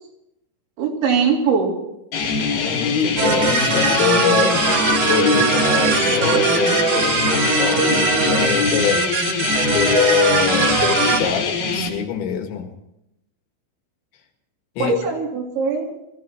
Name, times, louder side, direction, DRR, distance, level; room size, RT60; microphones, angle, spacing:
voice 1, 0.8-1.7 14.8-15.9, right 5 dB, 85° right, -1 dB, 5.4 m, -21 dB
sound 1, 2.1-11.9, left 4 dB, 50° left, 3.8 m, -23 dB
voice 2, 2.5-4.6 5.0-9.1 9.7-12.7 14.8-14.9, left 7 dB, 90° left, 4 dB, 4.1 m, -24 dB
sound 2, 3.2-11.2, right 4 dB, 65° right, 1.6 m, -20 dB
21.0 x 14.0 x 4.5 m, 0.85 s
omnidirectional pair, 5.1 m